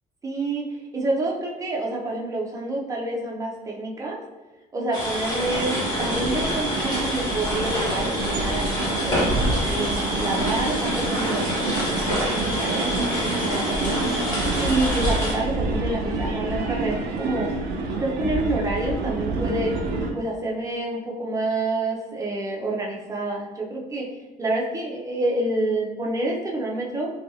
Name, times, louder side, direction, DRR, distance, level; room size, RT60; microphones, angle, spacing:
voice 1, 0.2-0.7 0.9-4.2 4.7-14.0 14.6-17.5 18.0-19.7 20.1-24.1 24.4-27.1, right 2 dB, 20° right, -2 dB, 0.6 m, -28 dB
sound 1, 4.9-15.3, equal, 25° left, 1.1 m, -27 dB
sound 2, 5.4-20.1, right 3 dB, 75° right, 0.4 m, -28 dB
2.5 x 2.3 x 2.7 m, 1.2 s
cardioid pair, 110°, 17 cm